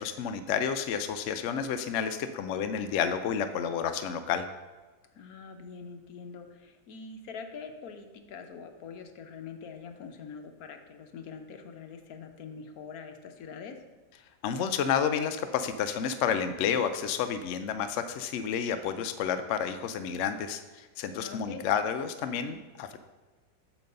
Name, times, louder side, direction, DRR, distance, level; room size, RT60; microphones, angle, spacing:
voice 1, 0.0-4.5 14.4-23.0, left 7 dB, 80° left, 8 dB, 0.6 m, -30 dB
voice 2, 5.1-13.8 21.2-21.7, left 5 dB, 65° left, 5 dB, 1.1 m, -44 dB
8.7 x 3.1 x 6.5 m, 1.2 s
omnidirectional pair, 1.8 m